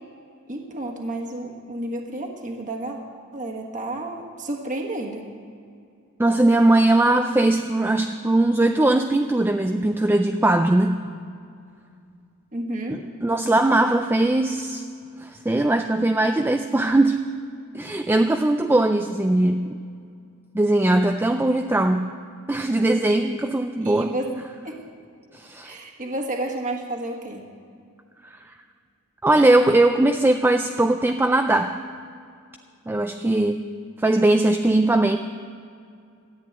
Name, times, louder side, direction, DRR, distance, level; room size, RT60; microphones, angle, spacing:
voice 1, 0.5-3.0 3.3-5.2 12.5-13.0 23.8-24.8 25.6-27.4, right 1 dB, 35° right, 1 dB, 1.5 m, -31 dB
voice 2, 6.2-11.1 12.9-14.8 15.2-17.2 17.7-19.8 20.5-22.1 22.5-24.2 25.3-25.8 28.2-28.4 29.2-31.8 32.9-33.7 34.0-35.2, right 2 dB, 10° right, 6 dB, 0.3 m, -20 dB
13.5 x 8.1 x 9.0 m, 2.4 s
head